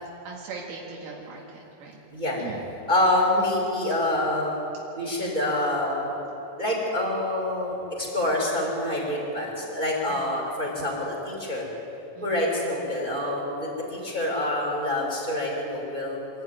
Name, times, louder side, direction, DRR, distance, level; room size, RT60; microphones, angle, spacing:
voice 1, 0.3-2.0 2.4-2.6 10.1-10.3 12.2-12.3, right 4 dB, 75° right, -3 dB, 4.5 m, -39 dB
voice 2, 2.9-4.6 5.0-6.2 6.6-11.7 12.2-16.2, left 1 dB, 10° right, -2 dB, 4.1 m, -26 dB
25.5 x 12.5 x 9.6 m, 2.9 s
omnidirectional pair, 6.0 m